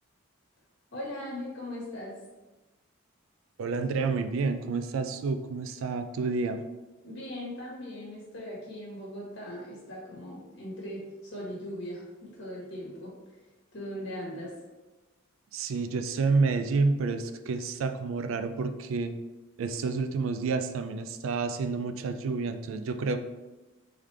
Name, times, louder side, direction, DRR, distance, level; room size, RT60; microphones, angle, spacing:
voice 1, 0.9-2.2 7.0-13.1 13.7-14.5, left 1 dB, 60° left, -5 dB, 1.3 m, -39 dB
voice 2, 3.6-6.6 15.5-19.1 19.6-23.2, right 4 dB, 65° right, 9 dB, 0.3 m, -29 dB
3.7 x 3.2 x 3.3 m, 1.1 s
head